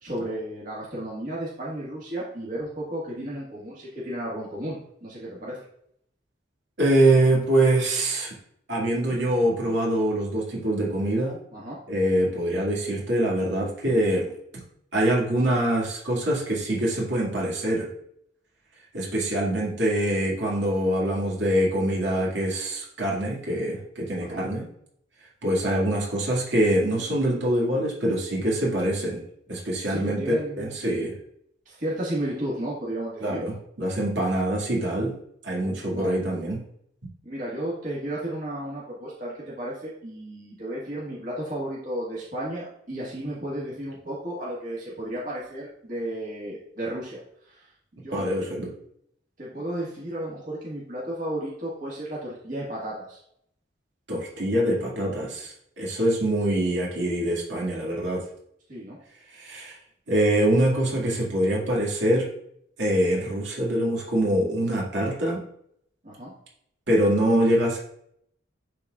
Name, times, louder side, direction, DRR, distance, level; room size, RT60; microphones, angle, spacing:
voice 1, 0.0-5.6 11.5-11.8 24.2-24.4 29.9-30.7 31.7-33.4 35.9-36.2 37.2-47.2 47.5-47.7 47.9-48.4 49.4-53.2 58.7-59.0 66.0-66.3, right 1 dB, 45° right, -6 dB, 1.8 m, -33 dB
voice 2, 6.8-8.3 8.7-11.4 11.9-14.3 14.9-17.9 18.9-24.7 25.4-29.2 29.5-30.2 30.6-31.1 33.2-35.2 35.4-36.6 48.1-48.7 54.1-58.2 59.3-59.8 60.1-62.3 62.8-65.4 66.9-67.8, right 1 dB, 70° right, -4 dB, 2.2 m, -24 dB
11.5 x 4.0 x 2.4 m, 0.71 s
head